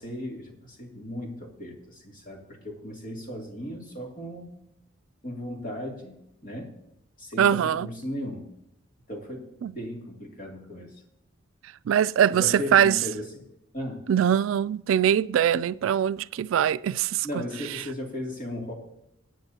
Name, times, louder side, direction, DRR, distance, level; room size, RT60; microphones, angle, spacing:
voice 1, 0.0-4.5 5.2-6.7 7.2-8.5 9.1-11.0 12.3-13.5 13.7-14.1 17.2-18.7, left 1 dB, 45° left, 2.4 m, -36 dB
voice 2, 7.4-7.9 9.6-9.7 11.9-13.0 14.1-17.3, right 9 dB, 85° right, 0.3 m, -22 dB
22.0 x 9.0 x 2.8 m
head